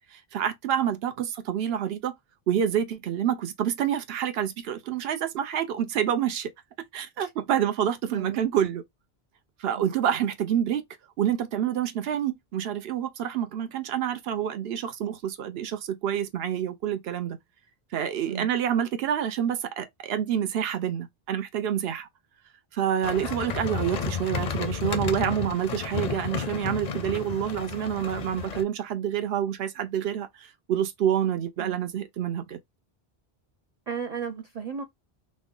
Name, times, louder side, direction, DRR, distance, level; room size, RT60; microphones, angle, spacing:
voice 1, 0.1-2.1 2.5-6.5 6.9-8.8 9.6-10.8 11.2-17.4 17.9-22.1 22.7-32.6, right 9 dB, 75° right, 0.8 m, -28 dB
voice 2, 8.1-8.4 9.8-9.9 18.3-18.5 31.6-31.8 33.9-34.8, right 6 dB, 55° right, 0.5 m, -34 dB
sound 1, 23.0-28.6, left 6 dB, 55° left, 0.5 m, -32 dB
3.1 x 2.1 x 3.6 m
omnidirectional pair, 1.0 m